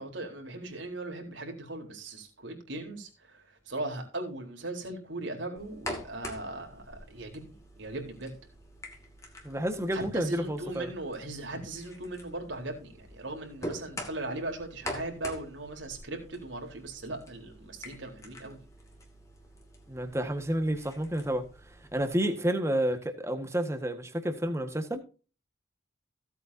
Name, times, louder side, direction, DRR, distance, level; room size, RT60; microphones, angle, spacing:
voice 1, 0.0-7.4 7.8-8.3 9.9-18.6, right 2 dB, 80° right, 4.0 m, -38 dB
sound 1, 5.6-22.1, left 1 dB, 15° left, 2.4 m, -45 dB
voice 2, 9.4-10.9 19.9-21.5 21.9-25.0, right 1 dB, 15° right, 1.6 m, -30 dB
16.5 x 8.3 x 2.8 m
head